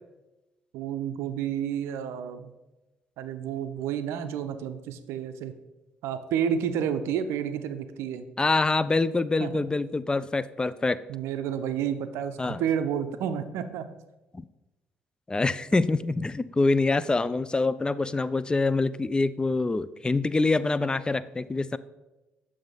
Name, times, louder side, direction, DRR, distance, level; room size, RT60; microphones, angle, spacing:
voice 1, 0.7-2.5 3.2-5.5 6.0-8.3 9.4-9.6 11.1-13.9, right 8 dB, 70° right, 10 dB, 0.5 m, -30 dB
voice 2, 8.4-11.0 12.4-12.6 14.3-14.4 15.3-21.8, left 3 dB, 20° left, 16 dB, 0.3 m, -25 dB
6.8 x 3.2 x 5.4 m, 1.1 s
hypercardioid pair, 50°, 5 cm